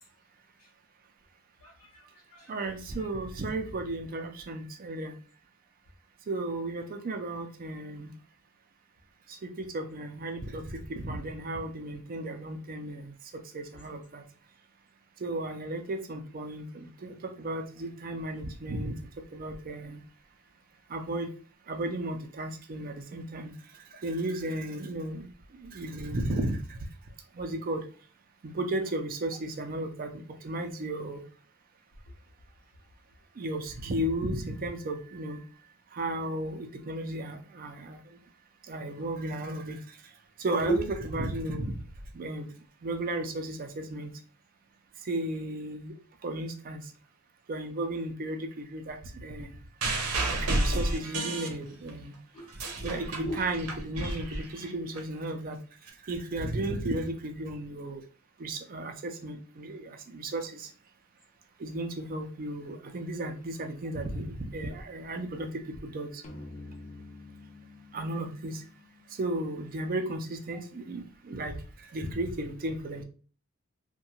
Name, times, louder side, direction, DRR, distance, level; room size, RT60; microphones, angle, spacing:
voice 1, 1.6-2.7 3.0-3.1 13.7-13.8 40.6-40.8 52.3-53.0 53.2-53.4, right 2 dB, 75° left, -4 dB, 0.7 m, -35 dB
voice 2, 2.5-5.1 6.3-8.1 9.4-13.1 13.5-14.2 15.2-18.9 19.3-20.0 20.9-21.3 21.7-23.5 24.0-26.8 27.4-27.8 28.4-31.2 33.4-35.4 35.9-38.0 38.7-39.8 40.4-40.8 41.1-41.7 42.1-42.5 42.8-44.1 45.1-45.9 46.2-46.8 47.5-49.5 50.3-52.2 52.8-55.6 56.0-58.0 58.4-60.7 61.6-66.2 67.9-68.6 69.2-71.6 71.9-73.0, right 1 dB, 40° right, 6 dB, 0.4 m, -34 dB
sound 1, 49.8-52.0 52.4-55.0 55.9-56.0, right 2 dB, 90° right, 0.7 m, -31 dB
sound 2, 66.2-69.7, left 2 dB, 30° left, 0.5 m, -48 dB
2.7 x 2.2 x 2.8 m, 0.40 s
head